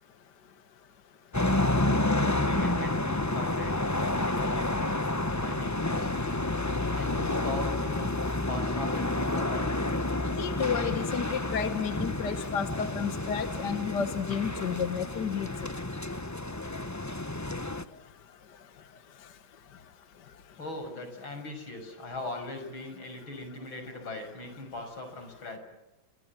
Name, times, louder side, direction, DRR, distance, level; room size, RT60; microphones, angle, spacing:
sound 1, 1.3-17.8, left 2 dB, 10° left, 0.8 m, -30 dB
voice 1, 2.1-5.0 5.4-6.1 6.9-9.8 20.6-25.6, left 2 dB, 85° left, 7 dB, 7.3 m, -40 dB
voice 2, 10.3-15.5, left 7 dB, 60° left, 10 dB, 1.8 m, -31 dB
29.5 x 26.5 x 7.4 m, 0.98 s
omnidirectional pair, 2.2 m